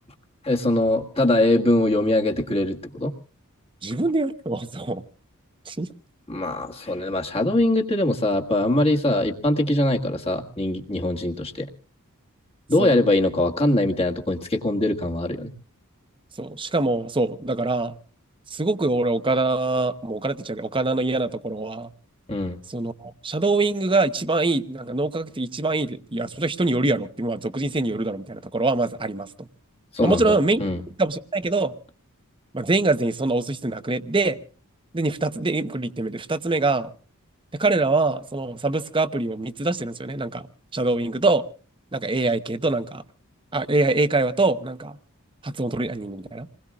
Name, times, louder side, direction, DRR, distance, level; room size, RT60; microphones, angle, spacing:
voice 1, 0.4-3.1 6.3-11.7 12.7-15.5 22.3-22.6 29.9-30.8, left 1 dB, 25° left, 1.7 m, -22 dB
voice 2, 3.8-5.0 5.7-5.9 12.8-13.0 16.4-18.0 18.5-21.9 22.7-29.5 30.0-30.6 31.0-31.7 32.5-34.4 34.9-36.9 37.5-40.5 40.7-41.4 41.9-43.0 43.5-45.0 45.4-46.5, right 2 dB, 25° right, 0.9 m, -24 dB
27.5 x 20.5 x 2.4 m
head